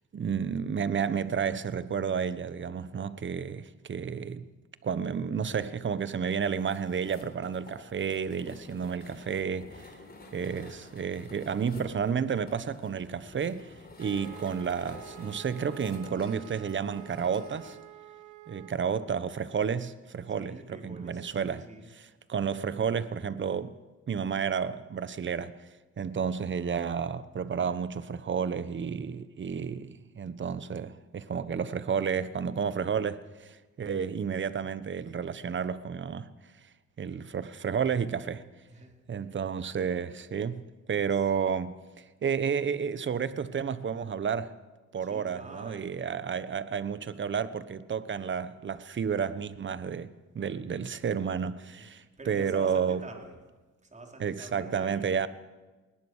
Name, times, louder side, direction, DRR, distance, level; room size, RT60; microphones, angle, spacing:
voice 1, 0.1-4.5 4.8-9.9 10.3-13.7 14.0-17.8 18.5-21.7 22.3-23.8 24.1-25.6 26.0-36.3 37.0-38.4 39.1-44.5 44.9-53.0 54.2-55.3, right 7 dB, 40° right, 1.2 m, -31 dB
sound 1, 6.4-17.8, left 2 dB, 30° left, 4.2 m, -50 dB
Wind instrument woodwind instrument, 14.0-18.8, right 15 dB, 90° right, 1.4 m, -49 dB
voice 2, 20.3-21.9 38.6-39.4 41.1-41.3 45.0-46.3 51.7-53.4 53.8-55.3, right 2 dB, 25° right, 4.5 m, -47 dB
21.0 x 19.0 x 6.5 m
cardioid pair, 90°, 30 cm